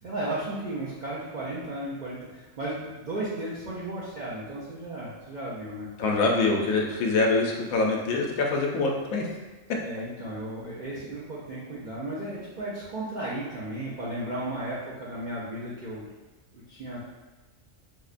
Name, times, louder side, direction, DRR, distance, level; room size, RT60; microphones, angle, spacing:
voice 1, 0.0-5.9 6.3-6.9 9.8-16.0 16.5-17.0, right 1 dB, 65° right, -8 dB, 0.4 m, -35 dB
voice 2, 6.0-9.3, left 3 dB, 80° left, 0 dB, 1.0 m, -24 dB
4.5 x 2.1 x 2.4 m, 1.2 s
omnidirectional pair, 1.4 m